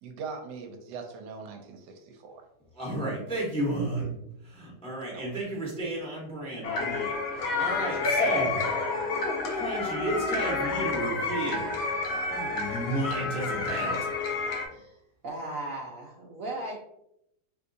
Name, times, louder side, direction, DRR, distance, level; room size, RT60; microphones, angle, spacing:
voice 1, 0.0-2.4 5.1-5.6, right 5 dB, 85° right, 4 dB, 1.2 m, -41 dB
voice 2, 2.7-4.1 4.4-8.6 9.5-11.7 12.3-14.0, right 1 dB, 5° left, -4 dB, 0.6 m, -32 dB
sound 1, 6.6-14.7, left 3 dB, 65° left, 0.6 m, -29 dB
voice 3, 15.2-16.8, right 2 dB, 70° right, -2 dB, 0.8 m, -37 dB
3.5 x 2.8 x 2.6 m, 0.79 s
omnidirectional pair, 1.8 m